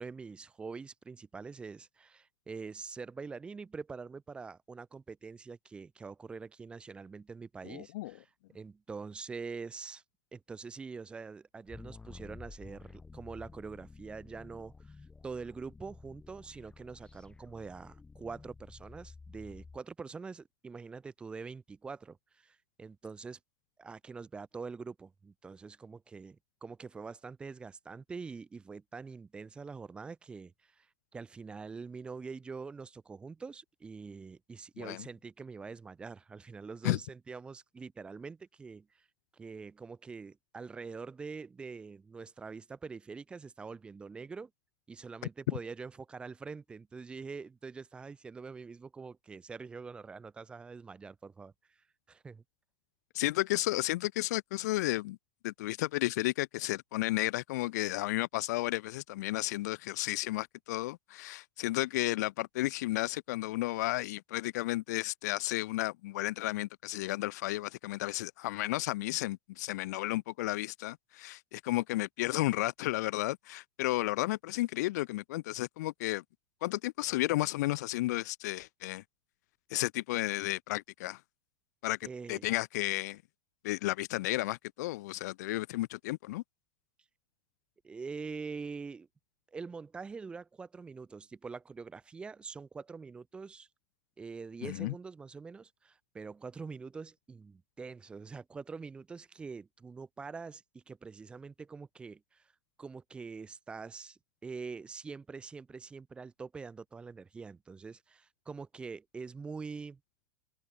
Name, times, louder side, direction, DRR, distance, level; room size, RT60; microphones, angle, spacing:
voice 1, 0.0-8.3 8.5-10.0 10.3-15.0 15.2-23.4 23.8-30.9 31.1-39.0 39.3-44.5 44.9-51.5 52.1-52.4 82.0-82.5 87.8-89.1 89.5-93.7 94.2-102.4 102.8-110.0, right 4 dB, 10° right, 1.6 m, -44 dB
voice 2, 7.6-8.1 34.8-35.1 36.8-37.0 45.5-45.6 53.1-55.2 55.4-76.2 76.6-79.0 79.7-81.2 81.8-83.2 83.6-86.4 94.6-94.9, left 18 dB, 55° left, 0.6 m, -33 dB
sound 1, 11.7-19.8, left 4 dB, 10° left, 6.7 m, -52 dB
supercardioid pair, 175°, 11 cm